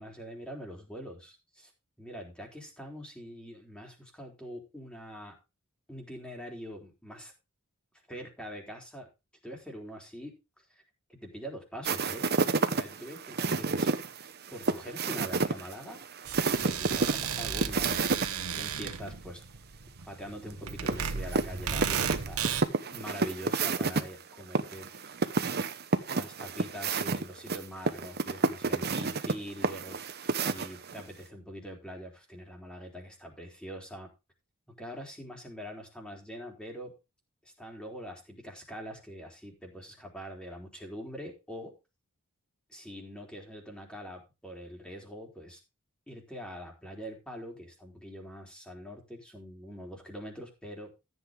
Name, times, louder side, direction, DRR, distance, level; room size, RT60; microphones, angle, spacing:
voice 1, 0.0-1.7 2.0-5.3 5.9-7.3 8.1-9.1 9.4-10.4 10.7-10.8 11.1-12.3 12.7-13.9 14.5-16.0 16.6-19.4 20.1-22.4 22.9-25.1 26.1-34.1 34.8-36.9 37.4-41.7 42.7-45.6 46.1-50.9, equal, 5° left, 1 dB, 3.6 m, -44 dB
sound 1, 11.8-18.3 18.6-18.7 20.9-24.0 24.5-31.0, right 4 dB, 50° right, 1.0 m, -30 dB
sound 2, 16.3-22.6, right 7 dB, 85° right, 1.2 m, -34 dB
14.0 x 8.1 x 3.7 m, 0.27 s
head